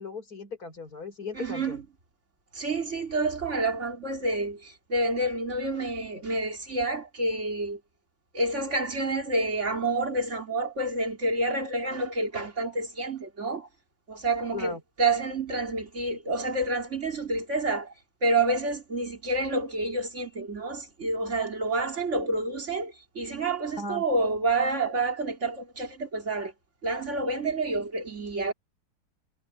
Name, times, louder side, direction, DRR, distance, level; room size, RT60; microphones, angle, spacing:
voice 1, 0.0-1.8 14.5-14.8 23.8-24.0, left 3 dB, 45° left, 5.2 m, -37 dB
voice 2, 1.3-1.8 2.5-7.8 8.3-13.7 14.1-17.9 18.2-26.5 26.8-28.5, right 2 dB, 35° right, 3.9 m, -28 dB
omnidirectional pair, 2.3 m